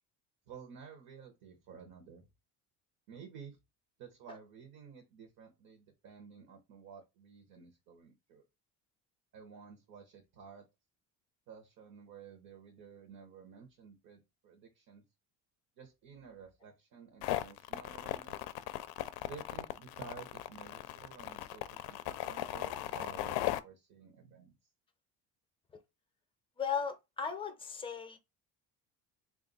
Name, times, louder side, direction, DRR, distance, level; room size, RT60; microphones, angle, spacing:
voice 1, 0.5-2.3 3.1-3.6 4.0-8.4 9.3-10.6 11.5-15.0 15.8-18.4 19.3-24.6, right 6 dB, 55° right, 1.0 m, -53 dB
sound 1, 17.2-23.6, left 14 dB, 65° left, 0.5 m, -37 dB
voice 2, 26.6-28.2, left 6 dB, 15° left, 0.6 m, -36 dB
3.7 x 2.5 x 3.9 m
cardioid pair, 150°, 39 cm